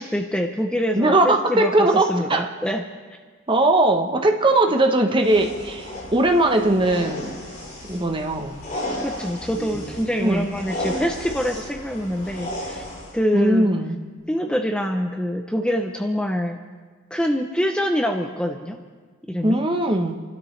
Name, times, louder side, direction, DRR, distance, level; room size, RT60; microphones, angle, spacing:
voice 1, 0.0-1.7 2.1-2.8 9.0-12.8 13.1-13.7 14.3-16.6 17.1-18.8 19.3-19.6, equal, 5° left, 4 dB, 0.6 m, -25 dB
voice 2, 0.9-2.4 3.5-7.4 7.9-8.6 10.2-10.5 13.3-14.0 19.4-20.2, right 2 dB, 25° right, 4 dB, 1.0 m, -19 dB
Brush the hair, 5.2-13.2, left 1 dB, 40° left, 4.5 m, -34 dB
27.5 x 12.5 x 3.3 m, 1.5 s
head